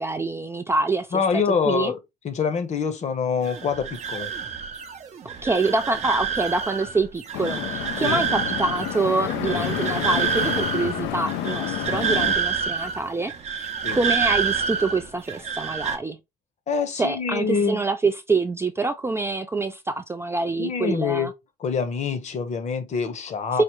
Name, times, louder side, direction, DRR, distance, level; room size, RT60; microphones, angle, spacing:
voice 1, 0.0-1.9 5.2-16.2 17.0-21.3 23.5-23.6, right 3 dB, 15° right, 0.3 m, -26 dB
voice 2, 1.1-2.0 2.2-4.3 8.0-8.2 13.8-14.0 16.7-17.8 20.6-21.3 21.6-23.6, left 6 dB, 45° left, 0.9 m, -25 dB
sound 1, 3.4-16.0, right 6 dB, 40° right, 0.7 m, -28 dB
sound 2, 7.3-12.4, left 11 dB, 90° left, 0.5 m, -29 dB
4.8 x 2.1 x 3.0 m
cardioid pair, 110°, 17 cm